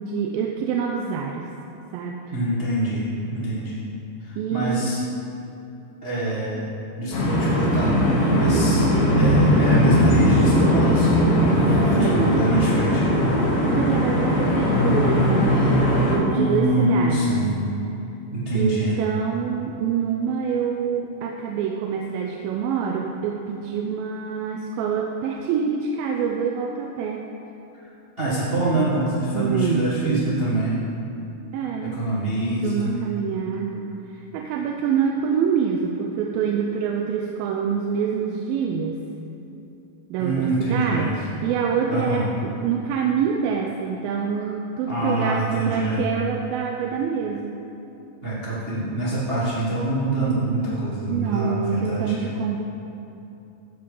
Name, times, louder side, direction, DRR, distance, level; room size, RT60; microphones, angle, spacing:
voice 1, 0.0-1.5 1.9-2.3 4.4-4.9 11.9-12.5 13.6-17.3 18.5-27.2 29.3-30.3 31.5-32.0 32.6-39.0 40.1-47.6 51.1-52.6, right 7 dB, 90° right, 1 dB, 2.4 m, -26 dB
voice 2, 2.3-3.8 4.2-5.0 6.0-6.6 7.0-7.9 8.3-8.8 9.2-11.1 11.4-13.1 15.5-15.7 16.3-17.6 18.3-19.0 28.2-30.8 31.9-32.9 40.2-41.1 41.9-42.2 44.4-44.5 44.9-46.0 48.2-52.1, right 1 dB, 60° right, -8 dB, 0.6 m, -25 dB
sound 1, 7.1-16.2, left 1 dB, 75° left, 3.1 m, -19 dB
14.5 x 5.1 x 5.4 m, 2.8 s
omnidirectional pair, 4.1 m